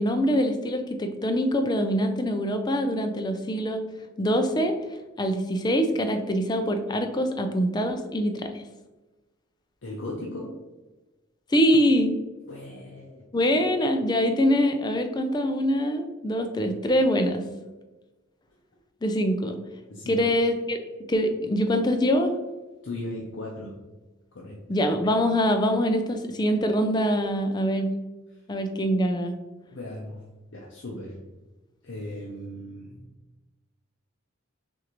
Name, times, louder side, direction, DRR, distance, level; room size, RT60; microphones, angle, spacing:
voice 1, 0.0-3.8 4.2-4.7 5.2-8.5 11.5-12.1 13.3-17.4 19.0-19.6 20.1-20.8 21.1-22.3 24.7-27.9 28.5-29.3, equal, 20° left, 6 dB, 0.4 m, -24 dB
voice 2, 9.8-10.6 12.5-13.3 19.9-20.3 22.8-23.8 24.3-24.8 28.3-28.4 29.7-30.2 30.5-31.2 31.8-33.1, left 1 dB, 65° left, -3 dB, 0.6 m, -37 dB
6.1 x 2.5 x 3.0 m, 1.1 s
head